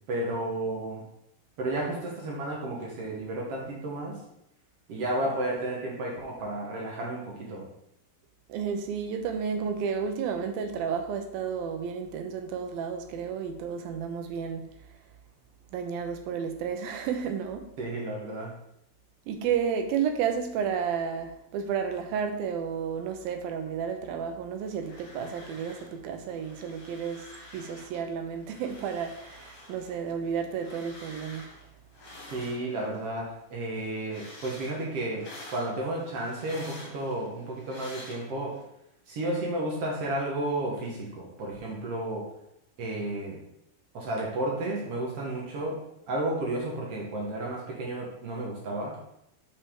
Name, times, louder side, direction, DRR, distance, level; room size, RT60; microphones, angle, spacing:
voice 1, 0.1-1.0 1.6-4.2 4.9-7.7 17.8-18.5 32.3-38.6 39.1-42.3 42.8-43.4 43.9-45.8 46.1-49.0, right 1 dB, 60° right, 1.6 m, -32 dB
voice 2, 8.5-14.6 15.7-17.7 19.3-27.3 27.5-31.5, right 7 dB, 85° right, 2.6 m, -32 dB
sound 1, 24.6-26.0 26.2-28.0 28.4-33.1 33.5-38.6, left 1 dB, 70° left, 3.0 m, -49 dB
6.6 x 5.5 x 3.6 m
omnidirectional pair, 4.1 m